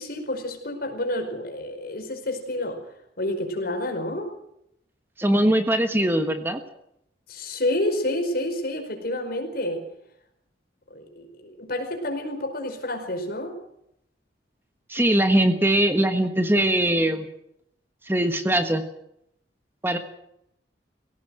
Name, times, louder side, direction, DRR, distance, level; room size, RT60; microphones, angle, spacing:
voice 1, 0.0-2.8 3.2-4.3 7.3-9.8 10.9-13.6, left 1 dB, 60° left, 4 dB, 5.1 m, -29 dB
voice 2, 5.2-6.6 14.9-17.3 18.1-18.8 19.8-20.0, right 1 dB, 15° right, 7 dB, 1.4 m, -21 dB
20.5 x 17.0 x 7.8 m, 0.78 s
head